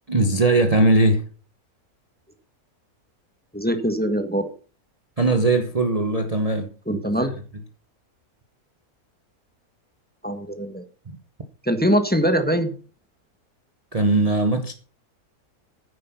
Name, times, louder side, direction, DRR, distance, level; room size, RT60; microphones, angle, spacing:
voice 1, 0.1-1.3 5.2-7.3 11.1-11.2 13.9-14.7, right 2 dB, 25° right, 1.0 m, -20 dB
voice 2, 3.5-4.5 6.9-7.3 10.2-10.8 11.6-12.7, equal, 5° left, 1.4 m, -22 dB
9.8 x 9.6 x 6.0 m
omnidirectional pair, 1.6 m